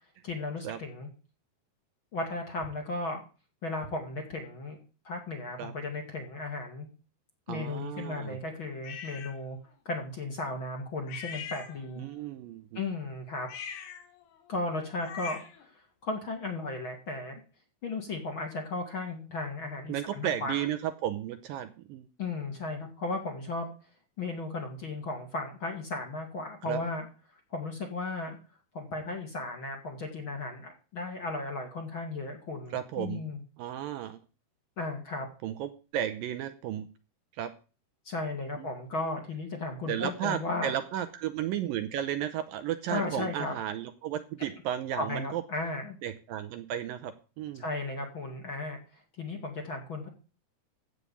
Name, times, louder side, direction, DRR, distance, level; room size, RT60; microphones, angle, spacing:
voice 1, 0.2-1.1 2.1-3.2 3.6-4.8 5.0-6.9 7.5-9.6 9.9-12.0 12.7-13.5 14.5-15.4 16.0-17.4 17.8-20.7 22.2-23.7 24.2-27.1 27.5-28.4 28.7-33.4 34.8-35.3 38.0-40.7 42.9-43.5 45.0-46.0 47.6-48.8 49.2-50.1, left 2 dB, 40° left, 2 dB, 2.2 m, -35 dB
voice 2, 7.5-8.4 12.0-12.8 19.9-22.1 26.6-26.8 32.7-33.2 33.6-34.2 35.4-36.9 37.4-37.5 38.6-38.7 39.9-45.4 46.0-47.6, right 11 dB, 75° right, 10 dB, 2.3 m, -34 dB
sound 1, 8.8-9.4 11.1-12.1 13.4-15.7, left 7 dB, 80° left, 3.6 m, -42 dB
14.5 x 5.0 x 8.5 m, 0.35 s
omnidirectional pair, 4.5 m